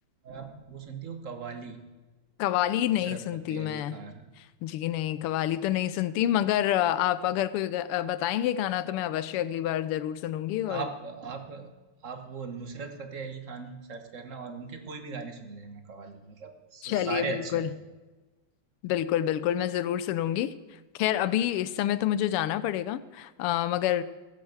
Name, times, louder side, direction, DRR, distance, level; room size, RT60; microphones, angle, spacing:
voice 1, 0.2-1.8 2.8-3.2 3.5-4.3 10.7-11.7 12.0-17.7, right 5 dB, 40° right, 1.5 m, -39 dB
voice 2, 2.4-4.0 4.6-10.9 16.8-17.7 18.8-20.5 21.0-24.0, left 12 dB, 90° left, 1.6 m, -28 dB
16.5 x 7.7 x 7.9 m
omnidirectional pair, 2.4 m